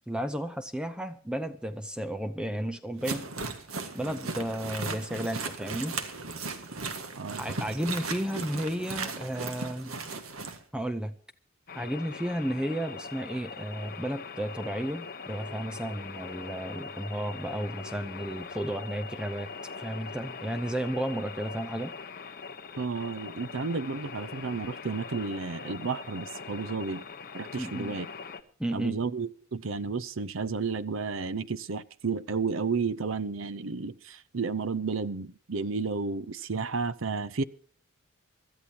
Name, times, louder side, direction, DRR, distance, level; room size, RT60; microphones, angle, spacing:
voice 1, 0.1-3.3 3.9-6.0 7.4-10.0 10.7-11.1 11.7-19.5 19.8-21.9 27.6-27.9 28.6-29.0, right 1 dB, 5° right, 0.7 m, -33 dB
sound 1, 3.0-10.6, right 3 dB, 80° right, 1.7 m, -36 dB
voice 2, 7.2-7.5 22.8-27.0 27.3-28.1 28.7-37.4, right 4 dB, 65° right, 0.7 m, -32 dB
sound 2, 11.7-28.4, left 5 dB, 45° left, 1.1 m, -42 dB
25.0 x 13.0 x 2.9 m
head